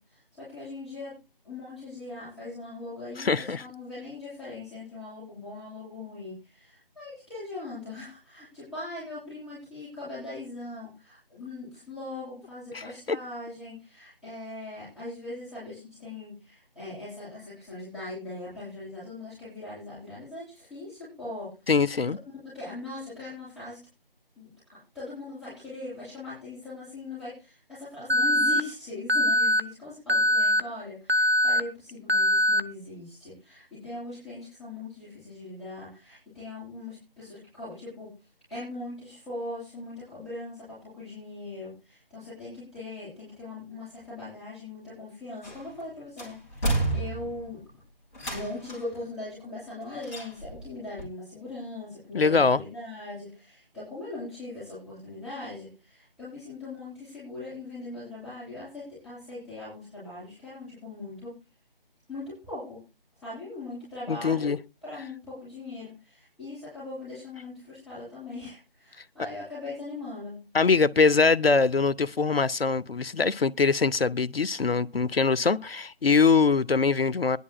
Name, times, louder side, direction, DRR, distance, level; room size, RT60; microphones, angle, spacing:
voice 1, 0.4-1.1 1.4-21.5 22.3-23.8 24.4-38.1 38.5-47.6 48.3-61.3 62.1-62.8 63.2-64.5 64.8-70.4, left 2 dB, ahead, 7.8 m, -40 dB
voice 2, 3.2-3.6 12.7-13.2 21.7-22.2 52.1-52.6 64.1-64.6 70.5-77.4, left 4 dB, 75° left, 0.7 m, -23 dB
Alarm, 28.1-28.6 29.1-29.6 30.1-30.6 31.1-31.6 32.1-32.6, left 1 dB, 85° right, 1.0 m, -22 dB
sound 1, 45.4-45.8 46.2-47.5 48.1-49.0 50.0-50.7 51.0-51.1, right 2 dB, 15° left, 3.3 m, -31 dB
22.5 x 11.0 x 2.2 m
figure-of-eight pair, 160°, 30 cm